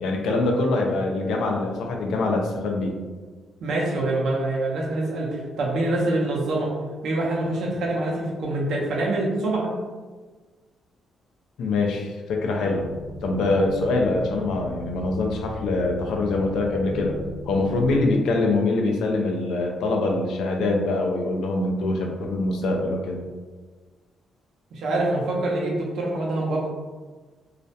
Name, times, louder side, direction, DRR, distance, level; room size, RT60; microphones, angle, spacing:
voice 1, 0.0-3.0 11.6-12.9 13.2-23.2, left 2 dB, 90° left, 1 dB, 0.4 m, -24 dB
voice 2, 3.6-6.7 7.0-9.7 24.7-26.6, right 2 dB, 70° right, -2 dB, 0.6 m, -25 dB
sound 1, 12.8-18.2, left 1 dB, 20° right, 1.2 m, -38 dB
2.3 x 2.1 x 2.7 m, 1.4 s
cardioid pair, 155°, 0 cm